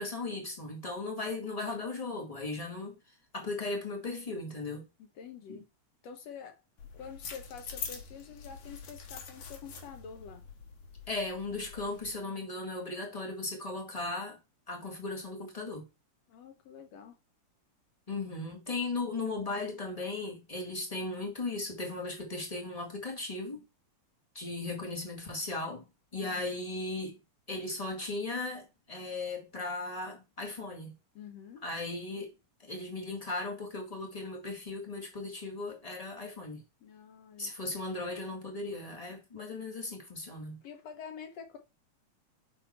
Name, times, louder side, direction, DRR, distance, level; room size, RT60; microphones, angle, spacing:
voice 1, 0.0-3.0 3.3-4.9 5.5-5.6 11.1-14.4 14.7-15.9 18.1-23.6 24.3-25.9 26.1-27.2 27.5-30.9 31.6-32.3 32.6-36.6 37.4-40.6, left 2 dB, 15° left, 1.4 m, -37 dB
voice 2, 5.0-5.7 6.0-6.6 6.9-10.4 16.3-17.2 26.2-26.5 31.2-31.6 36.8-37.5 40.6-41.6, left 7 dB, 65° left, 2.1 m, -47 dB
sound 1, 6.8-12.2, left 6 dB, 90° left, 2.8 m, -45 dB
5.6 x 5.6 x 4.3 m
omnidirectional pair, 3.3 m